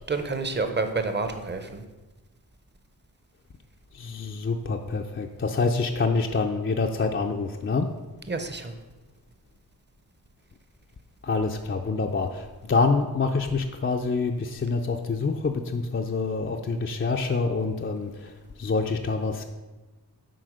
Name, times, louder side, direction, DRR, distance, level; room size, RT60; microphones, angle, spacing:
voice 1, 0.1-1.8 8.3-8.7, right 3 dB, 30° right, 7 dB, 0.9 m, -29 dB
voice 2, 3.9-7.9 11.2-18.3 18.6-19.4, left 4 dB, 35° left, 3 dB, 0.5 m, -26 dB
7.8 x 4.6 x 6.3 m, 1.2 s
wide cardioid pair, 100°, 38 cm